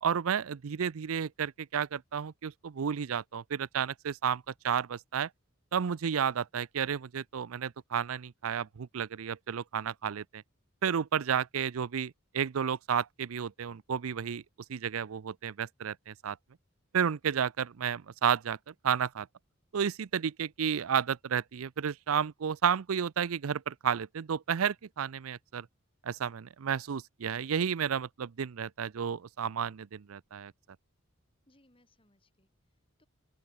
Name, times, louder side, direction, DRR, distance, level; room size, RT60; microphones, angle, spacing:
voice 1, 0.0-5.3 5.7-10.4 10.8-14.4 14.7-16.4 16.9-18.6 18.8-19.3 19.7-25.7 26.0-30.5, right 7 dB, 85° right, 0.5 m, -32 dB
voice 2, 31.5-33.1, left 1 dB, 25° left, 4.5 m, -68 dB
head